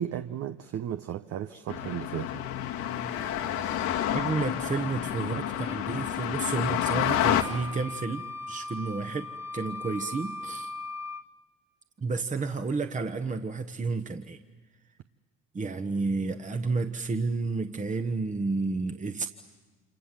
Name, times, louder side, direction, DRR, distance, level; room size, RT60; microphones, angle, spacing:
voice 1, 0.0-2.4, right 10 dB, 55° right, 1.0 m, -34 dB
sound 1, 1.7-7.4, left 11 dB, 75° left, 2.0 m, -29 dB
voice 2, 4.1-10.7 12.0-14.4 15.5-19.3, right 4 dB, 25° right, 1.3 m, -31 dB
sound 2, 7.1-11.2, left 2 dB, 10° right, 1.2 m, -39 dB
28.5 x 27.0 x 7.6 m
hypercardioid pair, 70°, 30 cm